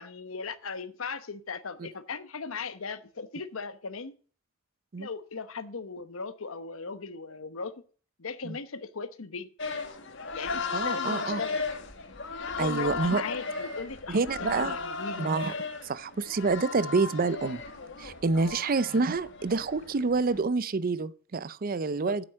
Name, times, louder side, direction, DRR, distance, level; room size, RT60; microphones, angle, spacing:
voice 1, 0.0-4.2 5.0-7.7 8.2-9.5 10.3-11.6 12.5-15.3 18.3-18.6 21.9-22.2, left 4 dB, 85° left, 1.0 m, -38 dB
sound 1, 9.6-20.4, left 4 dB, 60° left, 1.7 m, -36 dB
voice 2, 10.7-11.4 12.6-13.2 14.1-14.8 15.2-15.5 15.8-17.6 18.0-22.2, right 4 dB, 45° right, 0.5 m, -28 dB
8.9 x 7.9 x 7.4 m
head